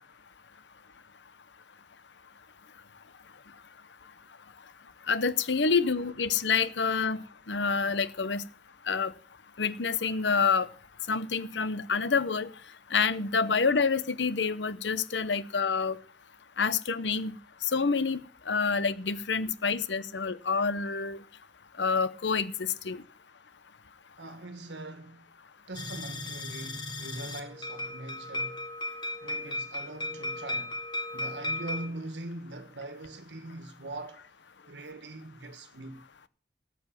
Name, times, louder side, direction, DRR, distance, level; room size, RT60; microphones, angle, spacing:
voice 1, 5.1-7.2 7.5-8.4 8.9-9.1 9.6-10.7 11.1-12.5 12.9-16.0 16.6-17.4 17.7-18.2 18.5-21.2 21.8-23.0, left 5 dB, 90° left, 0.9 m, -27 dB
voice 2, 24.2-25.3 25.7-28.6 29.2-30.8 31.1-34.2 34.7-36.0, right 2 dB, 80° right, 1.5 m, -42 dB
sound 1, 25.7-31.9, left 2 dB, 25° left, 1.8 m, -36 dB
14.0 x 8.2 x 7.3 m
head